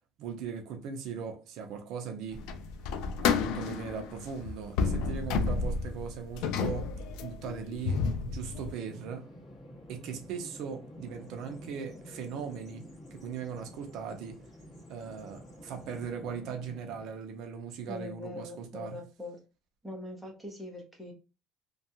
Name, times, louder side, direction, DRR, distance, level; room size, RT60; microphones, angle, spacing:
voice 1, 0.2-2.4 3.2-6.9 7.2-9.3 9.9-12.8 13.1-14.4 14.9-19.0, right 6 dB, 55° right, 0.5 m, -39 dB
sound 1, 2.3-8.7, left 5 dB, 70° left, 0.3 m, -31 dB
Bird vocalization bird call bird song, 8.8-17.2, equal, 25° left, 1.3 m, -50 dB
voice 2, 17.9-19.4 19.8-21.1, left 1 dB, ahead, 0.7 m, -42 dB
2.7 x 2.3 x 2.7 m
cardioid pair, 175°, 0 cm